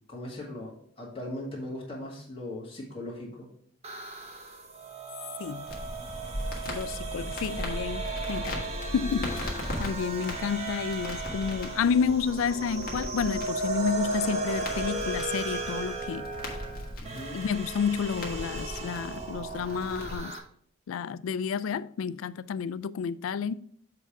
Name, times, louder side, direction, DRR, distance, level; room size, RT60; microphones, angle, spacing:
voice 1, 0.1-3.5 17.0-17.4, left 1 dB, 25° left, 2.0 m, -39 dB
sound 1, 3.8-20.4, right 3 dB, 30° right, 0.9 m, -36 dB
Crackle, 5.7-20.1, left 1 dB, 45° left, 1.6 m, -38 dB
voice 2, 6.7-8.6 8.9-9.4 9.8-16.3 17.3-20.4 20.9-23.5, left 6 dB, 85° left, 0.3 m, -30 dB
7.0 x 3.5 x 5.8 m
head